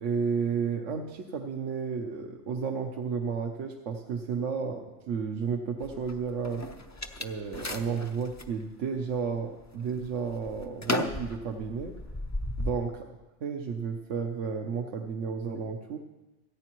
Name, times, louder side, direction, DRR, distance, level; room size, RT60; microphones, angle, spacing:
voice 1, 0.0-6.7 7.2-11.9 12.6-12.9 13.4-16.0, right 5 dB, 75° right, 3 dB, 1.1 m, -32 dB
sound 1, 5.8-8.5 9.1-9.6 10.0-12.7, left 2 dB, 25° left, 0.4 m, -35 dB
28.0 x 9.7 x 3.0 m, 1.1 s
omnidirectional pair, 1.3 m